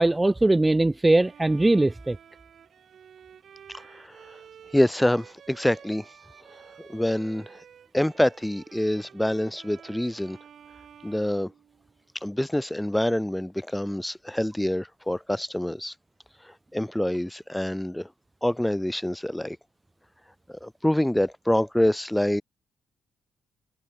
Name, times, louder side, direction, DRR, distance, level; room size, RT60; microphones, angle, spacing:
voice 1, 0.0-2.2, right 2 dB, 15° right, 0.3 m, -20 dB
Bowed string instrument, 1.1-12.1, right 8 dB, 60° right, 5.8 m, -51 dB
voice 2, 3.7-4.2 4.7-6.1 6.8-7.6 7.9-10.4 11.0-11.5 12.2-15.9 16.7-18.1 18.4-19.6 20.5-22.4, left 1 dB, 5° left, 0.8 m, -26 dB
cardioid pair, 90°, 0 cm